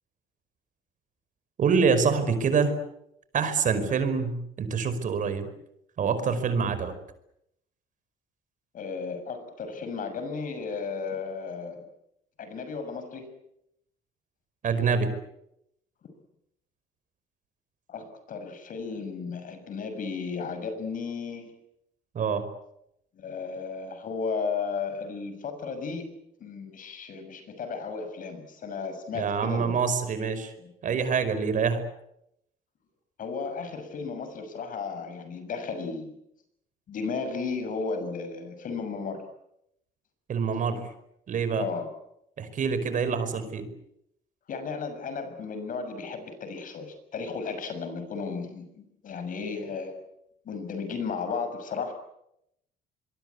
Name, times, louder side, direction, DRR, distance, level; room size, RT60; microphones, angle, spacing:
voice 1, 1.6-2.7 3.3-5.5 6.0-6.9 14.6-15.1 22.1-22.4 29.1-30.5 30.8-31.8 40.3-40.9 41.3-41.7 42.4-43.7, right 5 dB, 50° right, 11 dB, 5.1 m, -26 dB
voice 2, 8.7-11.8 12.4-13.3 17.9-21.5 23.1-26.1 26.4-29.8 30.6-30.7 33.2-36.1 36.9-39.3 41.6-41.9 44.5-49.9 50.4-51.9, left 5 dB, 55° left, 9 dB, 6.7 m, -34 dB
25.5 x 23.0 x 8.5 m, 0.79 s
cardioid pair, 110°, 17 cm